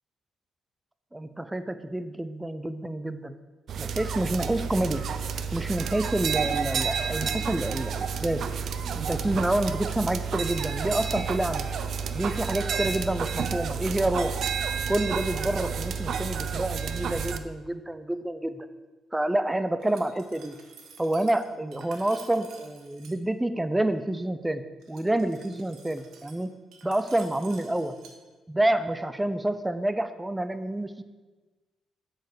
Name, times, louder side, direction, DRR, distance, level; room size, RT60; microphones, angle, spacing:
voice 1, 1.1-3.4 3.8-5.1 5.5-8.5 8.9-11.7 12.1-14.3 14.9-18.7 19.1-20.6 21.0-24.6 24.9-26.5 26.8-27.9 28.5-31.0, right 1 dB, 10° right, 11 dB, 0.7 m, -28 dB
sound 1, 3.7-17.4, right 6 dB, 60° right, 0.6 m, -30 dB
Glass, 19.8-23.2 24.8-28.2, right 6 dB, 80° right, 1.3 m, -51 dB
7.9 x 6.7 x 6.8 m, 1.3 s
cardioid pair, 90°, 0 cm